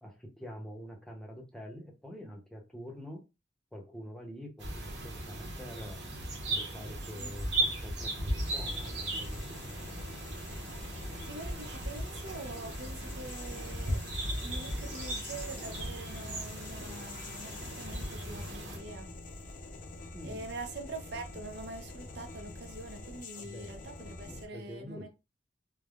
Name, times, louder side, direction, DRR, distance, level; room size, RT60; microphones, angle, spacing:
voice 1, 0.0-3.2 3.7-6.0 6.5-10.0 20.1-20.5 23.4-23.7 24.2-25.1, equal, 5° left, 0.7 m, -46 dB
sound 1, 4.6-18.8, right 1 dB, 80° right, 0.9 m, -37 dB
sound 2, 8.4-24.5, left 2 dB, 45° left, 0.4 m, -46 dB
voice 2, 10.9-14.0 14.4-19.1 20.2-25.1, right 2 dB, 60° right, 0.5 m, -45 dB
3.3 x 2.1 x 2.3 m
head